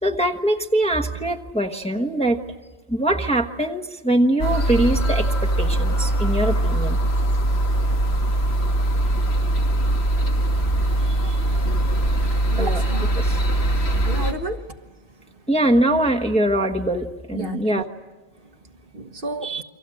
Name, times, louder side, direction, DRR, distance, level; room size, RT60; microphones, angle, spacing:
voice 1, 0.0-2.4 2.9-7.0 11.0-11.6 12.5-12.8 13.2-13.4 15.5-17.9 19.4-19.6, right 1 dB, 5° left, 1 dB, 1.2 m, -23 dB
sound 1, 4.4-14.3, right 1 dB, 80° left, 2.2 m, -21 dB
voice 2, 12.5-13.2 14.0-14.6 17.3-17.8 18.9-19.5, right 2 dB, 55° right, 5 dB, 1.5 m, -31 dB
29.0 x 25.0 x 7.7 m, 1.2 s
omnidirectional pair, 1.1 m